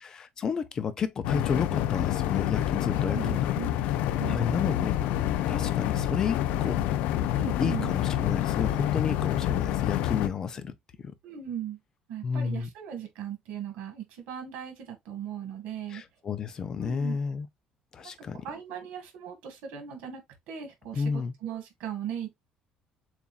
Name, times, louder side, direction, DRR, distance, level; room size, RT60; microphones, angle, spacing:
voice 1, 0.0-3.5 4.3-5.0 5.5-6.8 7.6-10.7 11.0-11.1 12.2-12.7 15.9-17.5 17.9-18.4 20.9-21.3, left 6 dB, 25° left, 0.5 m, -31 dB
sound 1, 1.2-10.3, left 12 dB, 85° left, 0.4 m, -27 dB
voice 2, 3.0-3.7 4.2-4.9 7.3-7.9 11.2-11.8 12.1-16.0 16.8-17.2 18.0-18.1 18.4-20.2 20.5-22.5, right 8 dB, 85° right, 1.7 m, -38 dB
6.9 x 2.5 x 2.4 m
cardioid pair, 180°, 2 cm